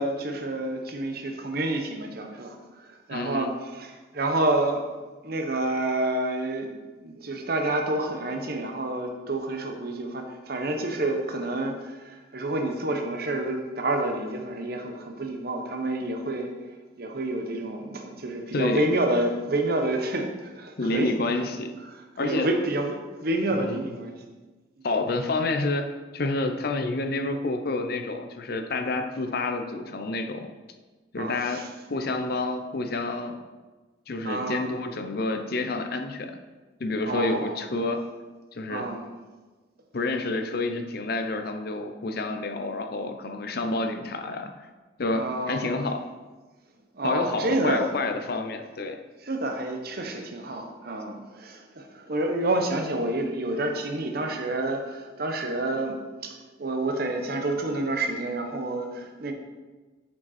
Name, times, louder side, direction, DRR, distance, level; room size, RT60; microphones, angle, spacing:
voice 1, 0.0-4.8 5.2-6.7 7.0-16.5 17.0-21.4 22.2-24.2 31.2-31.6 34.2-34.7 37.1-37.6 38.7-39.0 45.1-45.8 46.9-47.9 49.2-59.3, right 2 dB, 55° right, 4 dB, 0.9 m, -29 dB
voice 2, 3.1-3.5 18.5-18.9 20.8-21.7 22.2-22.5 23.5-23.9 24.8-25.9 26.1-30.5 31.1-31.6 31.9-33.4 34.1-36.3 36.8-38.0 38.5-38.9 39.9-44.5 45.0-46.0 47.0-49.0, left 2 dB, 55° left, 6 dB, 0.6 m, -29 dB
7.2 x 5.2 x 4.2 m, 1.3 s
head